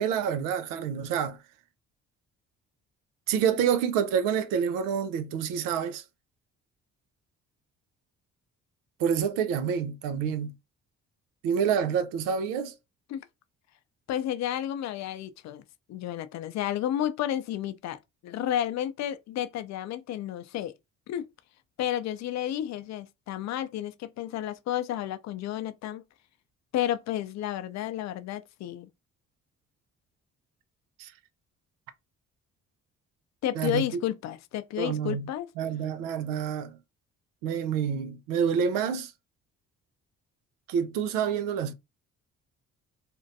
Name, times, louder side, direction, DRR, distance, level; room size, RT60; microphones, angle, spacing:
voice 1, 0.0-1.4 3.3-6.0 9.0-10.5 11.4-12.7 31.0-31.1 33.6-33.9 34.8-35.3 35.6-36.8 37.4-39.1 40.7-41.7, right 7 dB, 85° right, 0.5 m, -28 dB
voice 2, 14.1-15.6 15.9-20.7 21.1-21.3 21.8-26.0 26.7-28.9 33.4-35.5, left 11 dB, 60° left, 0.4 m, -31 dB
2.5 x 2.2 x 2.6 m
supercardioid pair, 60°, 32 cm